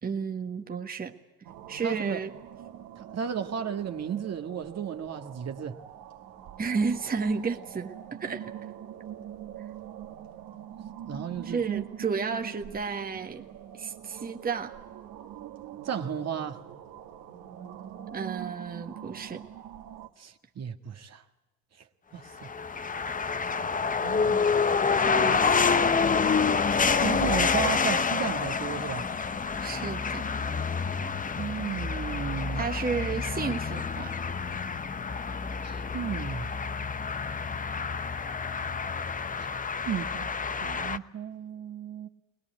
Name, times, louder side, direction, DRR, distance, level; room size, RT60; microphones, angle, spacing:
voice 1, 0.0-1.2 1.7-2.3 6.6-8.5 11.4-13.4 13.7-14.8 18.1-19.4 25.0-25.8 29.6-30.2 32.5-34.2, right 5 dB, 20° right, 1.6 m, -32 dB
sound 1, 1.4-20.1, right 10 dB, 55° right, 2.0 m, -44 dB
voice 2, 1.8-2.2 3.0-5.8 11.1-11.8 15.8-16.6 20.2-21.2 21.7-21.9 22.1-22.5 24.0-24.6 25.1-25.4 27.0-29.1 31.4-32.7 35.6-36.5 39.8-40.3 40.6-42.1, right 8 dB, 35° right, 1.7 m, -34 dB
sound 2, 22.4-41.0, left 5 dB, 20° left, 0.9 m, -28 dB
Acoustic guitar / Strum, 26.0-29.1, left 9 dB, 45° left, 2.9 m, -50 dB
21.5 x 20.5 x 9.4 m
hypercardioid pair, 75°, 42 cm